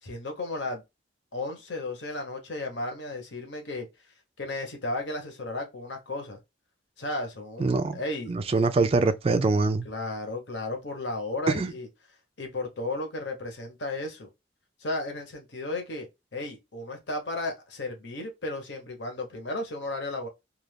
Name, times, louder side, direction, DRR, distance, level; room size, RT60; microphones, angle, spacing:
voice 1, 0.0-0.8 1.3-3.9 4.4-6.4 7.0-8.3 9.8-11.9 12.4-14.3 14.8-16.1 16.3-20.3, left 2 dB, 70° left, 1.0 m, -34 dB
voice 2, 7.6-8.0 8.3-9.9 11.5-11.7, right 3 dB, 30° right, 0.3 m, -24 dB
2.5 x 2.4 x 3.3 m
head